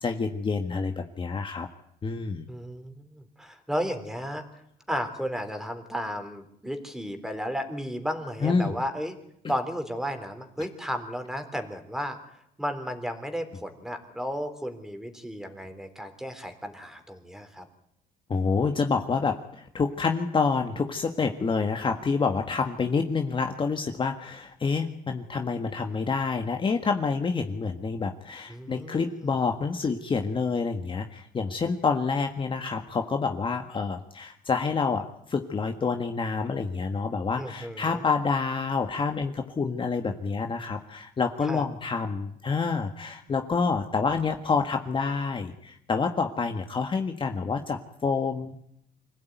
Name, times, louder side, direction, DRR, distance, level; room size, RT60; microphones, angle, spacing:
voice 1, 0.0-1.7 2.0-2.5 8.4-8.7 9.4-9.5 18.3-48.7, left 4 dB, 30° left, 5 dB, 1.7 m, -28 dB
voice 2, 2.5-4.4 4.9-9.1 9.5-12.2 12.6-17.7 28.5-29.3 37.4-38.0 41.4-41.7, equal, 5° right, 7 dB, 3.7 m, -33 dB
25.5 x 16.0 x 9.4 m, 0.74 s
cardioid pair, 110°, 17 cm